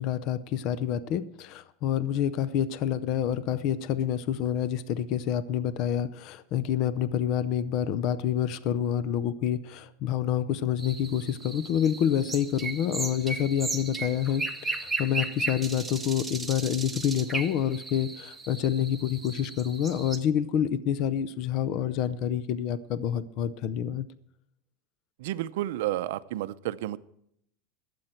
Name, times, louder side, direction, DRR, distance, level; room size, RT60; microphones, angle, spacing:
voice 1, 0.0-24.1, left 9 dB, 40° left, 15 dB, 0.5 m, -28 dB
sound 1, 10.8-20.2, right 3 dB, 5° right, 0.9 m, -36 dB
voice 2, 25.2-27.0, right 14 dB, 70° right, 14 dB, 0.6 m, -31 dB
21.5 x 7.8 x 4.4 m, 0.73 s
supercardioid pair, 170°, 0 cm